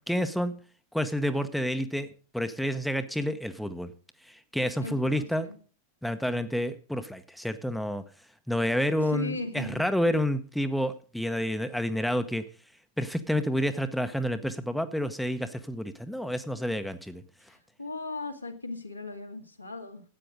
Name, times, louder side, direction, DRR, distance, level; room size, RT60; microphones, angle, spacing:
voice 1, 0.1-0.5 0.9-2.1 2.3-3.9 4.3-5.5 6.0-8.0 8.5-12.4 13.0-17.2, equal, ahead, 9 dB, 0.9 m, -29 dB
voice 2, 4.8-5.6 9.0-9.9 17.8-20.0, left 2 dB, 85° left, 2 dB, 2.0 m, -37 dB
13.0 x 8.9 x 5.1 m, 0.40 s
figure-of-eight pair, 90°, 0 cm